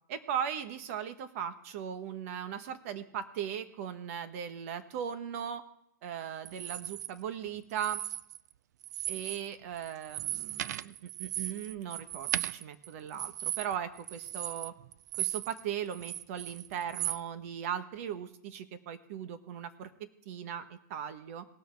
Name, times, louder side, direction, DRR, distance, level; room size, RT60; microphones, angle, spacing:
voice 1, 0.1-5.6 6.0-8.0 9.1-14.7 15.2-21.5, right 9 dB, 50° right, 10 dB, 1.3 m, -38 dB
sound 1, 6.5-7.1 7.7-8.5 8.8-9.5 9.8-15.6 15.9-17.2, right 11 dB, 65° right, 0.4 m, -37 dB
18.5 x 6.5 x 4.7 m, 0.74 s
hypercardioid pair, 135°, 10 cm